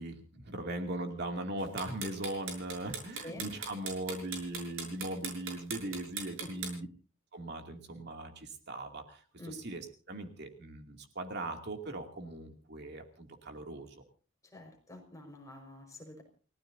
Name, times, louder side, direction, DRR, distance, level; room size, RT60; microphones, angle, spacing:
voice 1, 0.0-6.9 7.3-14.0, right 1 dB, 55° right, 4 dB, 2.6 m, -39 dB
sound 1, 1.6-6.7, right 5 dB, 90° right, 6.7 m, -39 dB
voice 2, 14.5-16.2, left 1 dB, 15° left, 2 dB, 5.1 m, -47 dB
30.0 x 17.5 x 2.7 m, 0.38 s
head